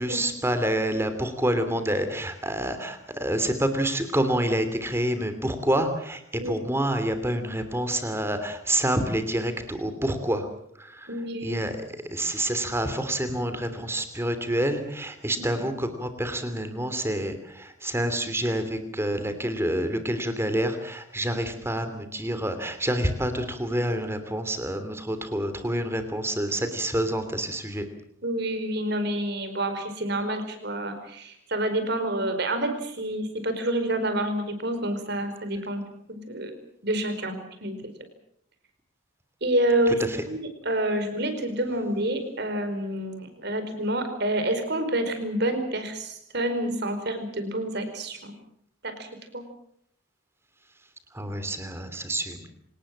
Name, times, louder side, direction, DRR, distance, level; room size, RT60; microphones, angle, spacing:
voice 1, 0.0-10.5 10.8-11.1 11.4-11.7 12.1-27.9 39.9-40.2 51.1-52.5, right 1 dB, 10° right, 9 dB, 3.0 m, -28 dB
voice 2, 11.1-11.7 28.2-35.8 36.1-36.6 36.8-37.9 39.4-40.4 40.6-48.3 48.8-49.1 49.3-49.4, right 1 dB, 55° right, 8 dB, 4.9 m, -28 dB
26.5 x 19.0 x 7.6 m, 0.70 s
head